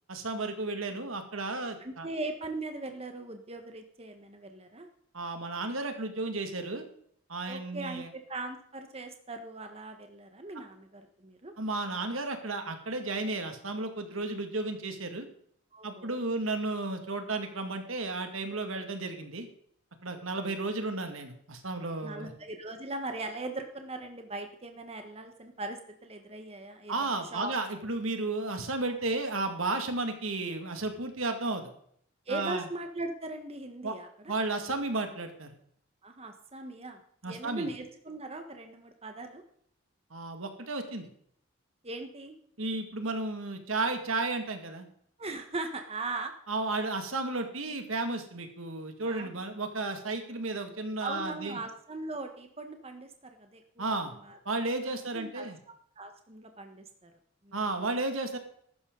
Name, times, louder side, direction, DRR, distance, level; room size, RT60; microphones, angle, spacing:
voice 1, 0.1-2.1 5.1-6.8 7.3-8.1 11.6-15.3 15.8-19.5 20.0-22.3 26.9-31.7 32.3-32.6 33.8-33.9 34.3-35.5 37.2-37.7 40.1-41.1 42.6-44.9 46.5-51.6 53.8-54.1 54.5-55.6 57.5-58.4, right 2 dB, 75° right, 6 dB, 2.2 m, -33 dB
voice 2, 1.8-4.9 7.4-11.5 15.7-16.2 22.0-27.5 32.3-34.3 36.0-39.4 41.8-42.4 45.2-46.3 49.0-49.4 51.0-54.4 54.8-55.5 56.0-57.1 57.4-57.7, right 2 dB, 30° right, 5 dB, 1.4 m, -40 dB
15.0 x 12.5 x 4.0 m, 0.66 s
head